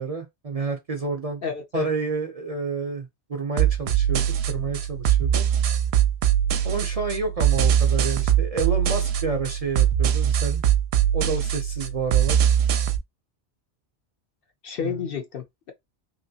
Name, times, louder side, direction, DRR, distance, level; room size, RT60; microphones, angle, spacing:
voice 1, 0.0-1.4 1.7-5.5 6.6-10.6 11.1-12.4 14.8-14.9, right 4 dB, 45° right, 0.5 m, -29 dB
voice 2, 1.4-1.9 14.6-15.7, left 6 dB, 60° left, 0.8 m, -30 dB
sound 1, 3.6-13.0, right 10 dB, 70° right, 0.8 m, -22 dB
3.0 x 2.8 x 2.7 m
omnidirectional pair, 1.2 m